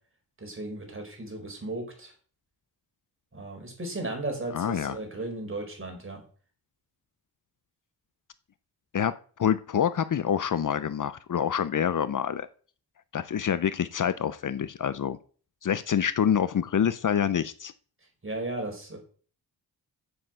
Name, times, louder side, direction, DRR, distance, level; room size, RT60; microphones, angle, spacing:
voice 1, 0.4-2.1 3.3-6.2 18.2-19.0, right 2 dB, 35° right, 3 dB, 4.5 m, -35 dB
voice 2, 4.5-5.0 8.9-9.1 9.4-12.5 13.1-15.2 15.6-17.7, left 8 dB, 55° left, 15 dB, 0.7 m, -26 dB
7.8 x 7.6 x 7.8 m, 0.42 s
wide cardioid pair, 90°, 38 cm